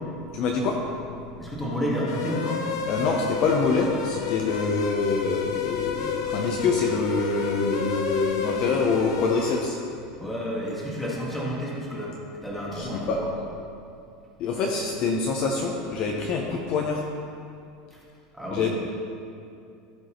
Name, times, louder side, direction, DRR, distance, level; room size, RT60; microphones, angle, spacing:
voice 1, 0.3-0.8 2.9-9.8 12.7-13.2 14.4-17.0 18.5-18.7, left 4 dB, 40° left, 0 dB, 0.7 m, -25 dB
voice 2, 1.4-2.6 10.2-12.1 12.4-13.3 17.9-18.0 18.3-18.7, equal, 5° left, -6 dB, 1.6 m, -30 dB
sound 1, 2.1-9.6, left 6 dB, 85° left, 0.7 m, -31 dB
15.0 x 5.3 x 3.1 m, 2.5 s
supercardioid pair, 170°, 2 cm